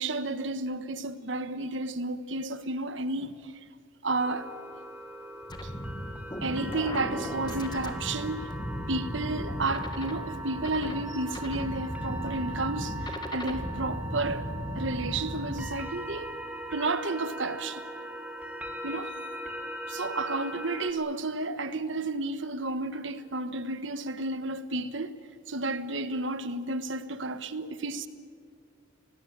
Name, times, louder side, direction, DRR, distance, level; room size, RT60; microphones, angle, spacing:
voice 1, 0.0-3.5 4.0-4.5 5.6-5.7 6.4-8.5 8.9-14.5 14.8-16.3 16.7-17.8 18.8-19.1 19.9-25.1 25.5-28.1, right 2 dB, 65° right, 1.3 m, -32 dB
sound 1, 4.2-20.9, right 1 dB, 5° right, 2.7 m, -40 dB
sound 2, 5.5-15.7, equal, 20° left, 1.8 m, -36 dB
25.0 x 18.5 x 8.8 m
head